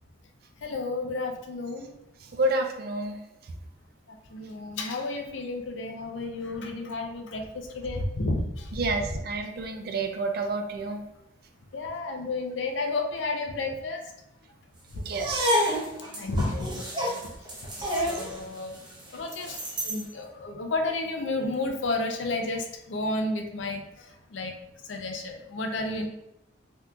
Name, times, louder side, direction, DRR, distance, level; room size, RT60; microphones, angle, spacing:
voice 1, 0.6-1.9 4.1-9.2 11.7-14.0 14.9-15.0 16.2-17.2 17.8-18.8 19.1-24.5 24.8-26.1, left 2 dB, 75° left, 3 dB, 0.5 m, -32 dB
voice 2, 2.3-3.2 8.7-11.0 15.1-15.5, right 2 dB, 50° right, 5 dB, 0.4 m, -29 dB
sound 1, 15.1-20.1, equal, 25° right, 0.8 m, -29 dB
3.6 x 2.8 x 2.3 m, 0.85 s
head